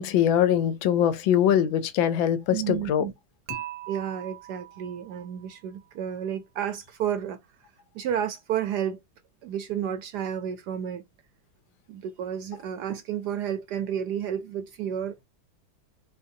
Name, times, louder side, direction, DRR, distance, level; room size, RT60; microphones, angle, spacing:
voice 1, 0.0-3.1, left 10 dB, 75° left, 1.3 m, -22 dB
voice 2, 2.5-3.1 3.9-7.4 7.9-9.0 9.4-11.0 11.9-15.2, right 9 dB, 70° right, 1.0 m, -31 dB
Dishes pots and pans / Chink clink, 3.5-5.6, right 14 dB, 90° right, 1.4 m, -40 dB
4.0 x 3.8 x 2.6 m
omnidirectional pair, 2.2 m